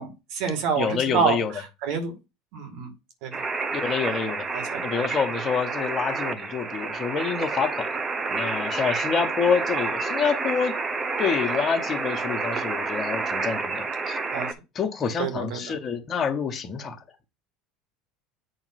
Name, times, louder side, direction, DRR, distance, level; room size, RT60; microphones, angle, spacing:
voice 1, 0.0-1.4 1.8-2.1 2.5-2.9 3.2-3.3 4.5-4.8 14.3-14.5 15.2-15.6, right 6 dB, 70° right, 2.1 m, -27 dB
voice 2, 0.8-1.5 3.7-4.4 4.8-7.9 8.3-10.7 11.2-14.2 14.7-17.0, left 6 dB, 35° left, 1.3 m, -27 dB
sound 1, 3.3-14.5, right 4 dB, 25° right, 1.0 m, -29 dB
8.5 x 3.1 x 5.9 m
supercardioid pair, 95°, 0 cm